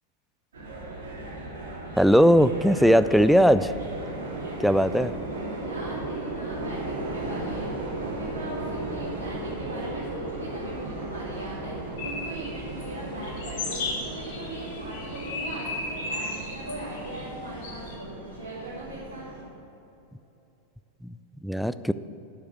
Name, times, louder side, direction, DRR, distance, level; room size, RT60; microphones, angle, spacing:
sound 1, 0.5-19.4, right 2 dB, 65° right, 2.9 m, -36 dB
voice 1, 2.0-3.7 4.6-5.1 21.0-21.1 21.4-21.9, equal, ahead, 14 dB, 0.3 m, -19 dB
voice 2, 5.6-19.3, right 1 dB, 85° right, -9 dB, 2.4 m, -40 dB
sound 2, 12.0-18.0, left 3 dB, 50° left, 1.8 m, -36 dB
11.5 x 6.7 x 6.4 m, 3.0 s
figure-of-eight pair, 90°, 0 cm